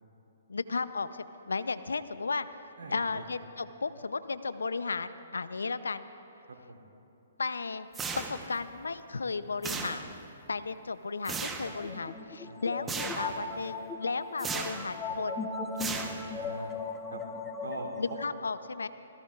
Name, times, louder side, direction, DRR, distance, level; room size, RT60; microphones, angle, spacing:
voice 1, 0.5-2.5 2.9-6.1 7.4-7.9 8.2-10.1 10.5-15.5 18.0-18.9, left 4 dB, 80° left, 13 dB, 0.6 m, -34 dB
voice 2, 2.8-3.3 6.7-6.8 12.5-12.9 16.0-16.7 17.1-17.2 17.6-17.9, right 3 dB, 70° right, -1 dB, 3.1 m, -43 dB
sound 1, 7.9-8.6 9.6-10.3 11.2-11.8 12.9-13.4 14.4-14.9 15.8-16.5, right 4 dB, 15° right, 1.0 m, -36 dB
sound 2, 11.6-18.2, left 4 dB, 15° left, 0.9 m, -38 dB
26.0 x 17.5 x 2.4 m, 2.9 s
hypercardioid pair, 135°, 0 cm